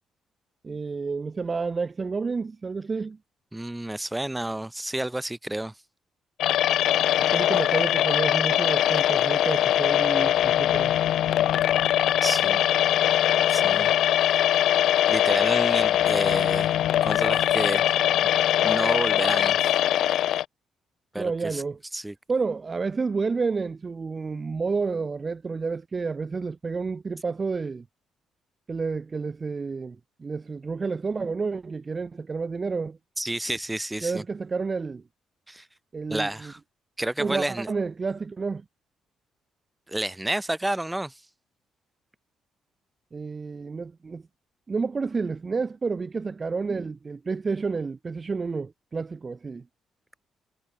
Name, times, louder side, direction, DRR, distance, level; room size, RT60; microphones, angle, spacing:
voice 1, 0.6-3.2 7.2-10.9 21.2-21.8 22.3-27.8 28.7-33.0 34.0-35.0 35.9-36.5 37.2-38.6 43.1-44.2 44.7-49.6, right 4 dB, 30° right, 0.6 m, -30 dB
voice 2, 3.5-5.7 12.2-12.6 13.5-13.9 14.3-14.8 15.1-16.7 17.0-17.9 18.6-19.8 21.1-21.6 21.9-22.1 33.2-34.2 35.5-35.7 36.1-36.6 37.0-37.7 39.9-41.2, right 1 dB, 10° right, 1.8 m, -30 dB
sound 1, 6.4-20.4, left 12 dB, 75° left, 0.8 m, -22 dB
cardioid pair, 90°, 0 cm